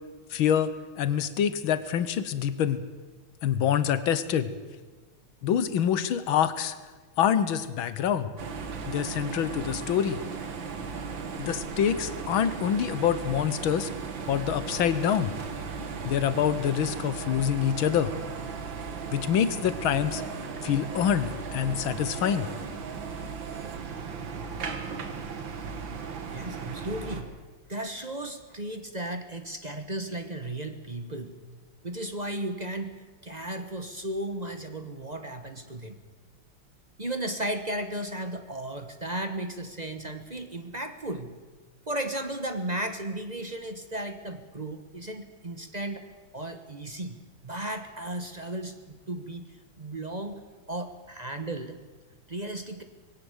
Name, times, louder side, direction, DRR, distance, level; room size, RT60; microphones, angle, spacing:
voice 1, 0.3-2.8 3.4-4.5 5.4-6.8 7.2-8.3 8.9-10.2 11.4-13.9 14.3-15.3 16.0-18.1 19.1-20.2 20.6-22.5, left 9 dB, 80° left, 14 dB, 1.8 m, -26 dB
sound 1, 8.4-27.2, right 5 dB, 70° right, 2.4 m, -36 dB
voice 2, 26.3-27.3 27.7-31.4 31.8-33.0 33.2-36.0 37.0-41.4 41.9-46.1 46.3-49.5 49.8-50.4 50.7-51.8 52.3-52.8, right 1 dB, 30° right, 8 dB, 0.9 m, -35 dB
20.5 x 17.0 x 8.1 m, 1.3 s
omnidirectional pair, 2.2 m